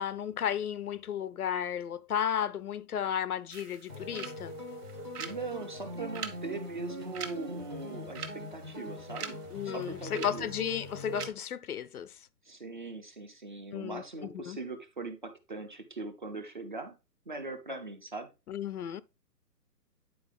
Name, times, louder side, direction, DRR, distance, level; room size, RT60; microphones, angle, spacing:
voice 1, 0.0-4.5 9.5-12.1 13.7-14.6 18.5-19.0, left 9 dB, 65° left, 0.6 m, -34 dB
sound 1, 3.5-11.3, right 6 dB, 65° right, 1.4 m, -45 dB
sound 2, 3.9-11.3, left 1 dB, 15° left, 0.6 m, -42 dB
voice 2, 5.2-9.4 9.6-10.5 12.5-17.0 17.3-18.3, right 3 dB, 30° right, 0.6 m, -40 dB
9.4 x 4.5 x 3.4 m
hypercardioid pair, 170°, 49 cm